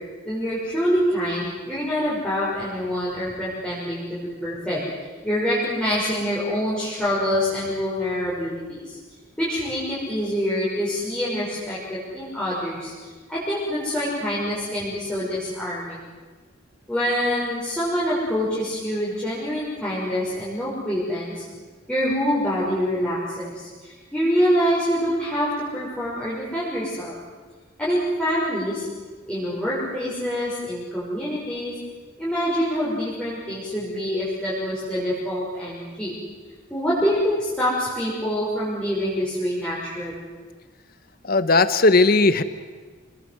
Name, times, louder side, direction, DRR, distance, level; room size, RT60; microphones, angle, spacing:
voice 1, 0.2-4.8 5.2-9.0 9.4-16.0 16.9-21.4 21.9-27.2 27.8-28.9 29.3-31.7 32.2-36.1 36.7-40.1, equal, 5° left, -9 dB, 6.0 m, -25 dB
voice 2, 41.2-42.4, left 3 dB, 45° left, 12 dB, 1.0 m, -17 dB
28.0 x 20.0 x 7.9 m, 1.4 s
head